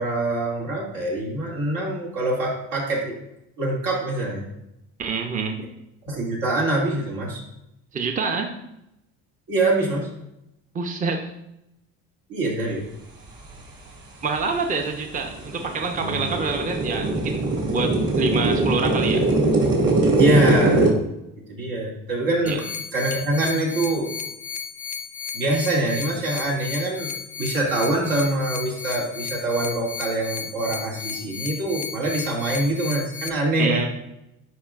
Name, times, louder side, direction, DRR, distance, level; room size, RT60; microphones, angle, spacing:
voice 1, 0.0-3.1 3.6-4.4 6.0-7.4 9.5-10.1 12.3-12.8 16.0-16.3 20.1-20.9 21.5-22.6 22.9-24.1 25.3-33.9, right 2 dB, 75° right, -3 dB, 2.4 m, -24 dB
voice 2, 5.0-5.7 7.9-8.6 10.7-11.3 14.2-19.3 22.4-22.6 33.6-33.8, right 4 dB, 25° right, 4 dB, 0.7 m, -27 dB
sound 1, 14.4-14.5 15.0-20.9, right 2 dB, 45° right, 2.2 m, -21 dB
sound 2, 22.5-33.3, left 6 dB, 25° left, 0.4 m, -34 dB
10.0 x 5.0 x 2.5 m, 0.86 s
supercardioid pair, 100°, 33 cm